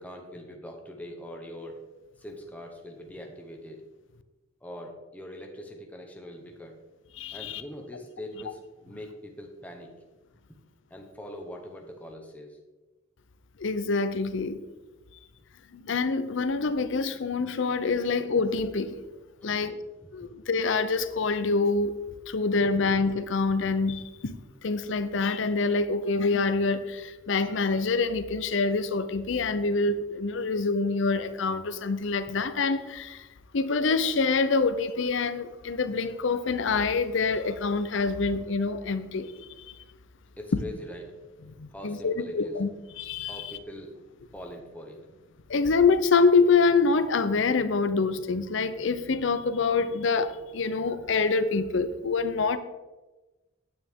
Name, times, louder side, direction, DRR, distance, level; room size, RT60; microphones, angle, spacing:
voice 1, 0.0-1.9 2.2-3.8 4.6-6.8 7.3-9.9 10.9-12.6 19.4-19.8 40.4-41.2 41.4-42.5 43.3-44.0 44.3-45.2, equal, 5° left, 2 dB, 1.0 m, -42 dB
voice 2, 7.1-7.6 13.6-14.6 15.7-18.9 19.4-19.8 20.1-21.9 22.3-24.3 24.6-33.3 33.5-39.7 41.6-42.7 43.0-43.6 45.5-52.6, left 4 dB, 65° left, 12 dB, 0.6 m, -26 dB
9.4 x 9.2 x 3.6 m, 1.1 s
head